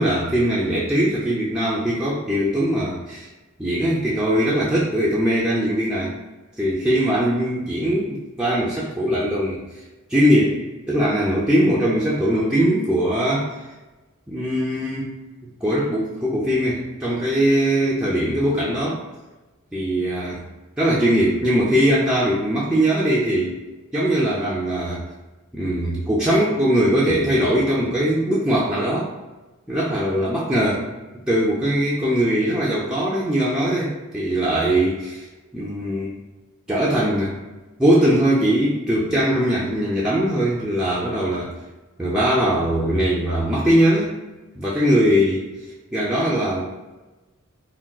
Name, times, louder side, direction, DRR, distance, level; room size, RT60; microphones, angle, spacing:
voice 1, 0.0-3.3 3.6-6.1 6.6-9.7 10.1-10.6 10.9-13.5 14.3-15.2 15.6-19.0 19.7-20.5 20.8-23.6 23.9-25.0 25.5-29.1 29.7-30.8 31.3-35.2 35.5-36.1 36.7-37.4 37.8-41.5 42.0-44.1 44.6-45.5 45.9-46.6, equal, 5° right, -8 dB, 0.3 m, -20 dB
3.7 x 2.2 x 2.3 m, 1.1 s
head